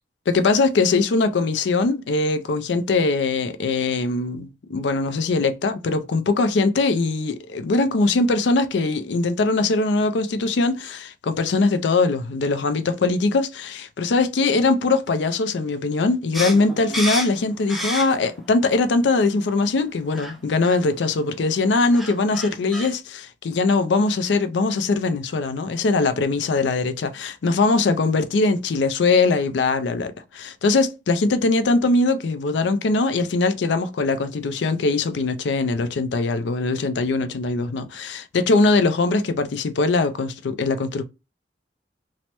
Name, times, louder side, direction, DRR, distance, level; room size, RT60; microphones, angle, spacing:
voice 1, 0.3-41.0, left 3 dB, 75° left, 0.4 m, -21 dB
sound 1, 16.3-18.4 18.8-19.5 20.1-20.4 20.6-20.8 21.6-21.7 21.9-22.9, equal, ahead, 0.5 m, -29 dB
3.1 x 2.1 x 2.9 m
head